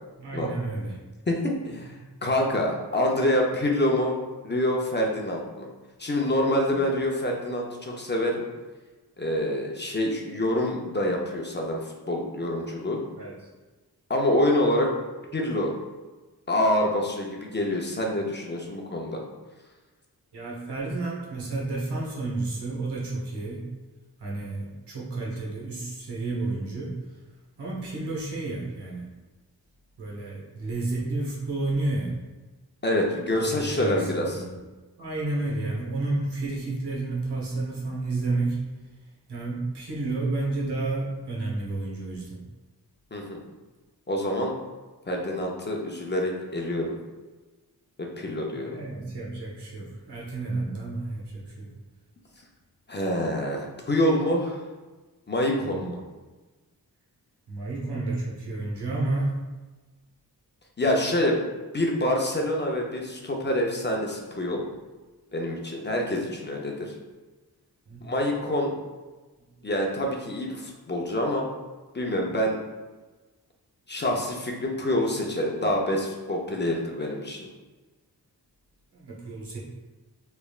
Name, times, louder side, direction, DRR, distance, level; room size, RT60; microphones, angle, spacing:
voice 1, 0.2-0.9 6.7-6.9 13.2-13.3 20.3-23.7 24.2-27.0 27.6-29.1 30.0-32.2 33.4-34.5 35.0-38.7 39.3-42.4 48.5-51.7 55.6-55.9 57.5-59.4 67.9-68.1 78.9-79.6, right 2 dB, 80° right, -4 dB, 1.1 m, -31 dB
voice 2, 1.3-1.9 2.2-4.2 4.4-5.7 6.0-8.4 9.2-13.0 14.1-14.9 15.3-15.7 16.5-19.2 32.8-34.4 43.1-43.4 44.1-44.5 45.1-47.0 48.0-48.7 52.9-54.6 55.3-55.9 60.8-61.4 61.7-64.6 65.3-66.9 68.0-68.7 69.6-71.5 71.9-72.6 73.9-77.4, left 1 dB, 25° left, -1 dB, 0.6 m, -26 dB
3.3 x 3.1 x 2.4 m, 1.2 s
cardioid pair, 65°, 40 cm